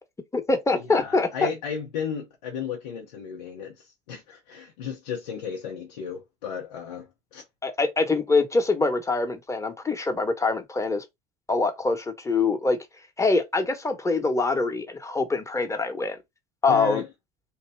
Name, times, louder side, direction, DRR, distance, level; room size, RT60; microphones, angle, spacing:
voice 1, 0.3-1.5 7.6-11.0 11.5-12.8 13.2-16.2 16.6-17.0, left 3 dB, 15° left, 1.0 m, -24 dB
voice 2, 0.9-7.4 16.7-17.1, left 7 dB, 80° left, 0.7 m, -34 dB
2.8 x 2.2 x 3.3 m
hypercardioid pair, 70°, 21 cm